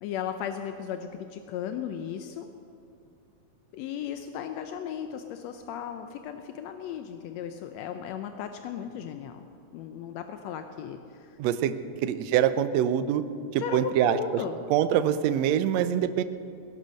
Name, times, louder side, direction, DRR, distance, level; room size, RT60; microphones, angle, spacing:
voice 1, 0.0-2.5 3.7-9.4 9.7-11.4 13.6-14.6, left 8 dB, 80° left, 7 dB, 1.5 m, -36 dB
voice 2, 11.4-11.7 12.0-13.2 13.5-14.2 14.7-16.2, right 10 dB, 75° right, 12 dB, 1.6 m, -24 dB
18.0 x 11.0 x 6.4 m, 2.6 s
omnidirectional pair, 3.7 m